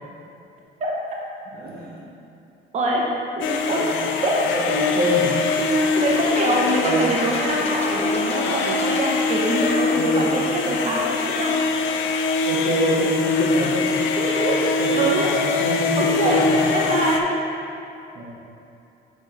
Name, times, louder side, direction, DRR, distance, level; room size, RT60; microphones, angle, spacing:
voice 1, 1.5-2.2 3.8-3.9 4.5-5.4 6.8-7.1 9.9-10.5 12.4-14.5 14.8-16.9 18.1-18.2, right 1 dB, 50° right, -4 dB, 1.4 m, -26 dB
voice 2, 2.7-3.0 3.4-3.8 4.2-4.3 4.7-5.0 5.6-11.5 14.2-15.2 16.0-16.5 16.7-17.4, right 2 dB, 35° right, -3 dB, 0.7 m, -24 dB
sound 1, 3.4-17.2, left 4 dB, 70° left, 0.5 m, -23 dB
sound 2, 6.2-9.7, left 3 dB, 30° left, 0.6 m, -32 dB
6.6 x 3.5 x 4.5 m, 2.7 s
cardioid pair, 135°, 21 cm